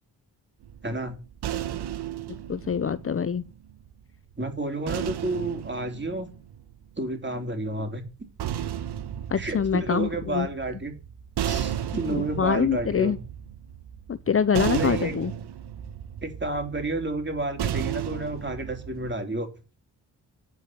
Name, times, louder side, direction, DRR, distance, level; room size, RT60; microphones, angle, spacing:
sound 1, 0.6-3.9 4.9-7.1 8.1-19.2, right 10 dB, 75° right, 1.2 m, -34 dB
voice 1, 0.8-1.2 4.4-6.3 7.0-8.0 9.4-10.9 11.4-13.2 14.7-15.2 16.2-19.5, right 2 dB, 25° right, 3.8 m, -30 dB
voice 2, 2.5-3.4 9.3-10.5 12.1-13.2 14.1-15.3, left 7 dB, 35° left, 0.7 m, -25 dB
9.5 x 5.5 x 7.7 m
supercardioid pair, 55°, 40 cm